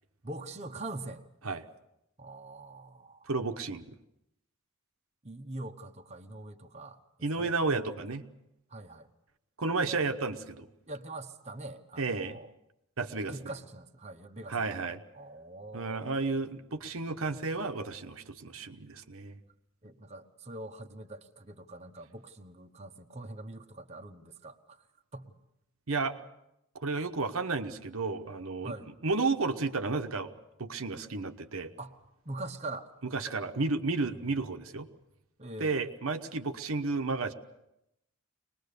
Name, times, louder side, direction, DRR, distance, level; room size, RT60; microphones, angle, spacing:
voice 1, 0.2-1.2 2.2-3.3 5.2-7.0 7.3-8.0 8.7-9.1 10.9-12.5 13.3-16.1 19.8-24.8 25.1-25.3 28.6-28.9 31.8-32.9 34.1-34.3 35.4-35.8, right 2 dB, 30° right, 4 dB, 1.1 m, -43 dB
voice 2, 3.3-4.0 7.2-8.2 9.6-10.7 12.0-12.4 13.0-13.5 14.5-15.0 15.7-19.3 25.9-26.2 26.7-30.3 30.6-31.7 33.1-34.9 35.6-37.3, right 3 dB, 75° right, 6 dB, 1.1 m, -32 dB
23.0 x 20.0 x 6.8 m, 0.86 s
head